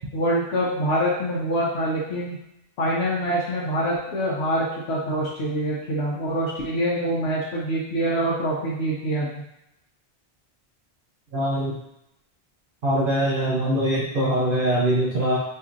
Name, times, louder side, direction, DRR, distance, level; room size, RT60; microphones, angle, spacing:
voice 1, 0.1-2.4 2.8-9.3, right 1 dB, 85° left, -6 dB, 1.0 m, -25 dB
voice 2, 11.3-11.8 12.8-15.4, right 1 dB, 60° right, -5 dB, 0.8 m, -22 dB
4.3 x 2.8 x 2.5 m, 0.84 s
omnidirectional pair, 1.1 m